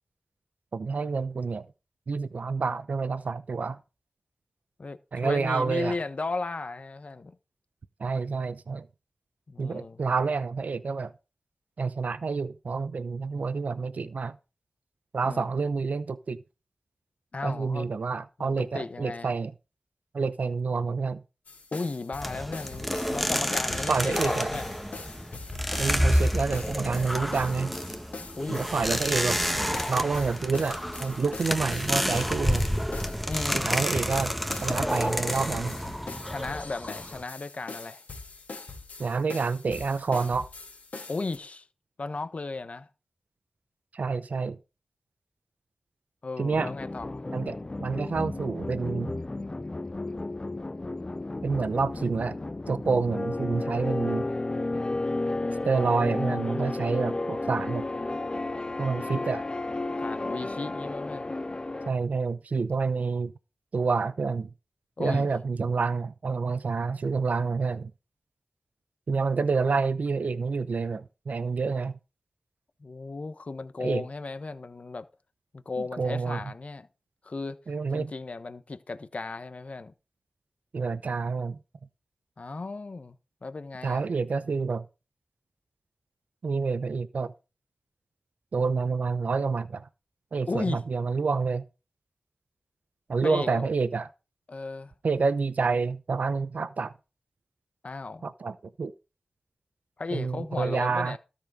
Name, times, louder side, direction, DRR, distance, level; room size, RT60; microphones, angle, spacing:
voice 1, 0.7-1.7 2.1-3.8 5.1-5.9 8.0-8.9 9.6-11.1 11.8-14.4 15.1-16.4 17.4-19.5 20.1-21.2 23.9-24.5 25.8-27.7 28.5-32.7 33.6-34.3 34.6-35.8 39.0-40.5 43.9-44.6 46.4-46.7 47.3-49.1 51.4-52.4 52.7-54.3 55.6-57.8 58.8-59.4 61.9-63.3 63.7-64.5 65.0-67.9 69.1-72.0 73.8-74.0 76.0-76.4 77.7-78.1 80.7-81.6 83.8-84.8 86.4-87.3 88.5-89.9 90.3-91.6 93.1-94.1 95.0-96.9 98.2-98.9 100.1-101.2, right 4 dB, 80° right, 0.8 m, -28 dB
voice 2, 4.8-7.4 9.5-10.0 15.2-15.5 17.3-17.9 18.4-19.3 21.7-24.7 28.4-28.7 29.7-30.2 33.2-33.7 36.2-38.0 41.1-41.7 42.0-42.9 46.2-47.2 60.0-61.3 65.0-65.3 72.8-75.1 75.5-76.9 77.2-77.6 77.9-79.9 82.4-83.2 83.4-84.0 90.5-90.8 93.2-93.7 94.5-94.9 97.8-98.2 100.0-101.2, left 3 dB, 60° left, 1.2 m, -35 dB
sound 1, 21.5-41.4, left 3 dB, 85° left, 3.6 m, -42 dB
sound 2, 22.2-37.2, equal, ahead, 1.3 m, -29 dB
sound 3, 46.5-61.9, left 2 dB, 35° left, 0.7 m, -32 dB
13.0 x 7.0 x 5.1 m
cardioid pair, 50°, 3 cm